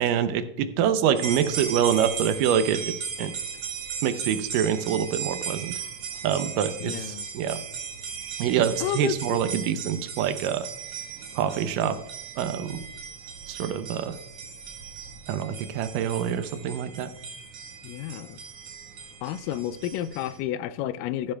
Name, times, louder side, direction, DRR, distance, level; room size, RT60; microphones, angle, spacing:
voice 1, 0.0-2.9 3.2-3.3 4.0-5.7 6.2-7.6 8.4-10.7 11.4-12.0 12.4-12.8 13.5-14.2 15.3-17.1, right 9 dB, 85° right, 2.3 m, -25 dB
sound 1, 1.1-20.4, right 6 dB, 55° right, 2.2 m, -37 dB
voice 2, 6.8-7.3 8.8-9.4 17.8-18.4 19.2-21.3, left 11 dB, 85° left, 2.2 m, -31 dB
15.0 x 9.8 x 2.3 m
omnidirectional pair, 3.8 m